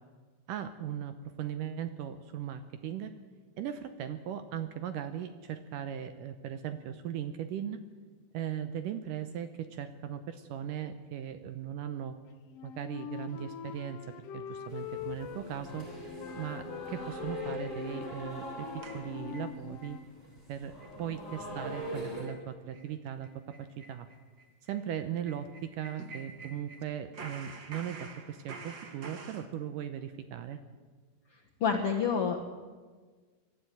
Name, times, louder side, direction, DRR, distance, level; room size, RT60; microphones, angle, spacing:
voice 1, 0.5-3.1 3.6-7.8 8.3-12.2 12.6-15.9 16.4-20.0 20.5-23.3 23.8-24.1 24.7-30.6, right 9 dB, 75° right, 9 dB, 2.1 m, -38 dB
Wind instrument woodwind instrument, 12.5-15.9 16.2-20.0, left 10 dB, 90° left, 1.3 m, -43 dB
sound 1, 14.7-22.2, equal, 15° right, 6.4 m, -42 dB
sound 2, 18.8-20.0 20.3-20.4 20.8-21.0 21.3-21.4 21.8-21.9 22.2-22.4 22.7-22.9 23.2-26.8 27.1-29.5, right 4 dB, 90° right, 0.8 m, -48 dB
voice 2, 31.6-32.4, left 6 dB, 65° left, 1 dB, 1.4 m, -28 dB
23.5 x 13.0 x 9.2 m, 1.5 s
omnidirectional pair, 4.5 m